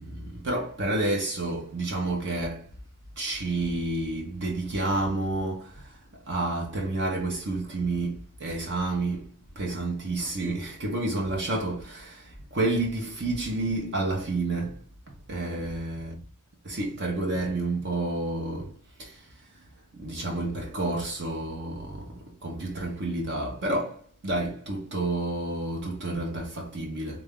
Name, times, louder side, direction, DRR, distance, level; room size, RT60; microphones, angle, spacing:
voice 1, 0.0-2.7 3.2-16.2 16.6-19.6 19.9-27.2, right 2 dB, 50° right, 0.9 m, -30 dB
3.4 x 2.6 x 3.6 m
head